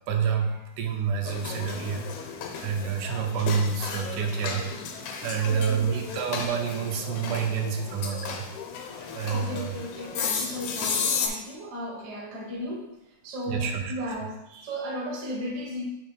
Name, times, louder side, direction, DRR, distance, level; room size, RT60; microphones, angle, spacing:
voice 1, 0.1-2.1 2.6-4.7 5.2-8.5 9.1-9.8 13.5-13.9, right 6 dB, 85° right, 3 dB, 2.2 m, -28 dB
sound 1, 1.2-11.3, left 6 dB, 75° left, 2.1 m, -34 dB
voice 2, 5.4-6.3 7.8-8.0 9.3-12.9 13.2-15.8, equal, 65° right, 0 dB, 1.0 m, -36 dB
6.6 x 3.0 x 5.3 m, 0.92 s
omnidirectional pair, 3.5 m